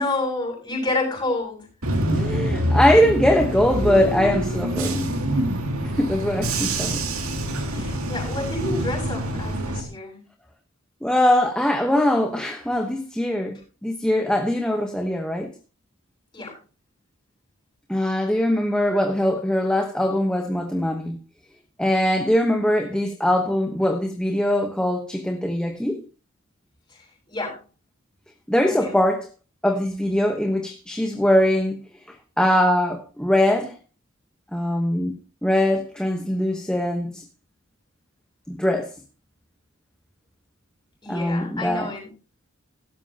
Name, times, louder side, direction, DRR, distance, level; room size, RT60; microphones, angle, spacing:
voice 1, 0.0-2.0 7.7-10.2 16.3-16.6 26.9-27.6 28.7-29.0 41.0-42.1, left 2 dB, 20° left, 7.1 m, -29 dB
Bus / Engine, 1.8-9.8, right 1 dB, 85° right, 2.6 m, -25 dB
voice 2, 2.1-5.1 5.8-7.0 7.7-7.9 11.0-15.5 17.9-21.2 21.8-26.0 28.5-29.3 29.6-31.8 32.1-33.8 34.5-35.2 35.4-37.2 38.5-38.9 41.1-41.9, left 1 dB, 5° left, 1.0 m, -22 dB
16.5 x 13.0 x 2.9 m
head